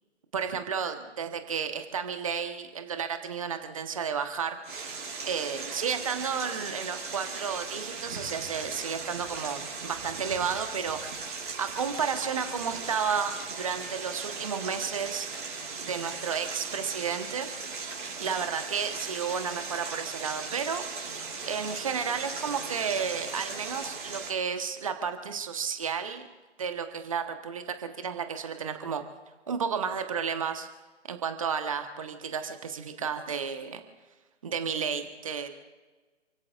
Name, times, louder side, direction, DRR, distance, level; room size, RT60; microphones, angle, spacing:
voice 1, 0.3-4.6 5.2-15.3 15.8-17.5 18.2-21.1 21.5-26.2 26.6-29.0 29.5-30.7 31.1-33.8 34.4-35.5, right 6 dB, 30° right, 7 dB, 1.3 m, -32 dB
sound 1, 4.6-24.3, right 4 dB, 45° right, 5.1 m, -38 dB
29.5 x 16.5 x 2.5 m, 1.3 s
figure-of-eight pair, 145°, 36 cm